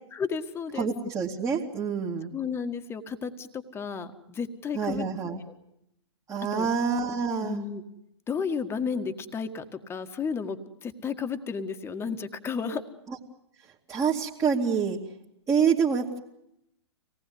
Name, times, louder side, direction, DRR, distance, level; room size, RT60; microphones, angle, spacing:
voice 1, 0.1-0.9 2.3-5.1 6.5-6.7 7.4-7.8 8.3-12.8, left 6 dB, 15° left, 7 dB, 1.8 m, -32 dB
voice 2, 0.8-2.3 4.7-5.4 6.3-7.6 13.1-13.2 13.9-15.0 15.5-16.2, right 6 dB, 20° right, -2 dB, 2.5 m, -27 dB
25.5 x 19.0 x 9.5 m, 0.81 s
hypercardioid pair, 120°, 15 cm